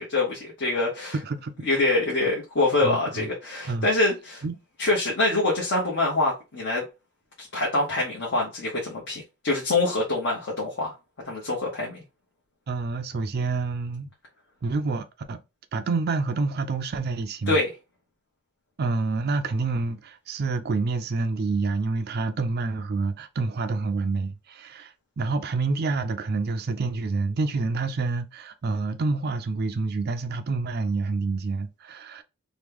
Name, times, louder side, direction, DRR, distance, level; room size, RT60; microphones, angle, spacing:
voice 1, 0.0-1.1 1.6-4.4 4.8-6.8 7.5-10.9 11.2-12.0 17.5-17.7, left 2 dB, 55° left, 1.0 m, -25 dB
voice 2, 2.8-3.3 3.7-3.9 4.4-4.6 12.7-14.1 14.6-15.4 15.7-17.6 18.8-32.2, right 3 dB, 45° right, 0.4 m, -28 dB
3.0 x 2.2 x 3.4 m
head